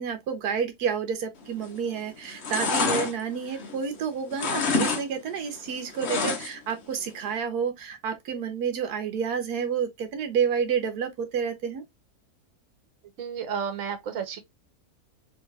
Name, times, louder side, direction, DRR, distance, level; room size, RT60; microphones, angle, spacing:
voice 1, 0.0-11.8, right 7 dB, 85° right, 1.3 m, -29 dB
sound 1, 1.6-1.9 2.2-4.0 4.3-5.0 5.3-6.7 7.1-7.2, left 4 dB, 50° left, 1.1 m, -27 dB
voice 2, 13.2-14.4, right 7 dB, 60° right, 1.3 m, -32 dB
3.4 x 3.1 x 3.2 m
omnidirectional pair, 1.6 m